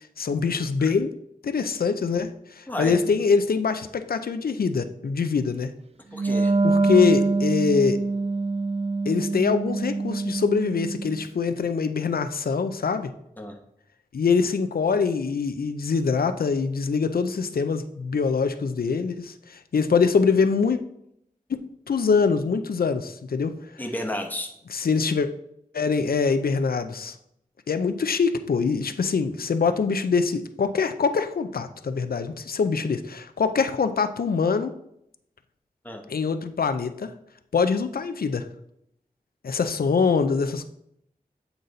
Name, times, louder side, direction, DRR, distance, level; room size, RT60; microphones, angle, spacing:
voice 1, 0.2-1.1 1.4-5.7 6.6-8.0 9.1-13.1 14.1-20.8 21.5-23.5 24.7-25.3 25.7-27.2 27.7-34.7 36.1-37.1 37.5-38.5 39.4-40.7, left 5 dB, 80° left, 9 dB, 0.5 m, -24 dB
voice 2, 2.7-3.1 6.1-6.5 13.4-13.6 23.8-24.5 35.8-36.0, left 1 dB, 10° left, 3 dB, 0.9 m, -32 dB
Wind instrument woodwind instrument, 6.1-11.2, right 3 dB, 40° right, 0.5 m, -25 dB
8.1 x 4.0 x 3.9 m, 0.74 s
wide cardioid pair, 80°, 15 cm